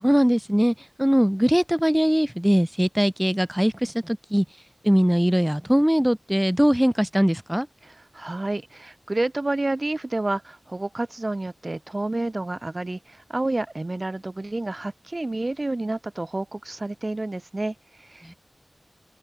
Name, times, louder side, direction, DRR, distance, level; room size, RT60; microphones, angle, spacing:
voice 1, 0.0-4.5 4.8-7.7 18.3-18.4, equal, 5° right, 0.6 m, -21 dB
voice 2, 7.8-18.3, right 2 dB, 35° right, 0.9 m, -29 dB
wide cardioid pair, 60°, 0 cm